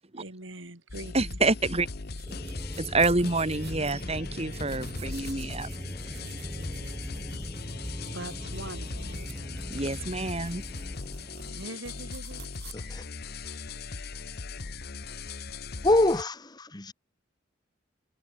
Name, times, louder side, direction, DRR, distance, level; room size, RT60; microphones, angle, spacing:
voice 1, 0.1-1.4 2.4-3.0 6.0-7.1 8.1-9.8 10.8-10.9 11.4-12.5 12.8-13.1, right 2 dB, 85° right, 4.7 m, -44 dB
sound 1, 0.9-16.2, left 4 dB, 55° left, 1.1 m, -39 dB
voice 2, 1.1-1.9 2.8-5.7 9.7-10.6, right 3 dB, 35° right, 2.0 m, -27 dB
sound 2, 1.3-12.7, right 7 dB, 60° right, 7.4 m, -51 dB
sound 3, 2.3-11.5, equal, 5° right, 3.0 m, -41 dB
voice 3, 12.7-13.0 15.8-16.9, left 2 dB, 20° left, 1.2 m, -25 dB
head